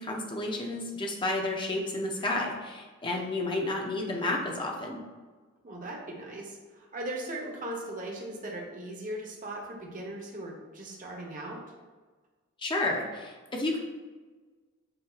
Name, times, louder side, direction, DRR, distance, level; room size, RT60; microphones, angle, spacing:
voice 1, 0.0-5.0 12.6-13.8, left 2 dB, 20° left, 0 dB, 0.6 m, -31 dB
voice 2, 5.6-11.6, right 1 dB, 40° right, -1 dB, 0.8 m, -38 dB
7.7 x 2.7 x 2.4 m, 1.4 s
head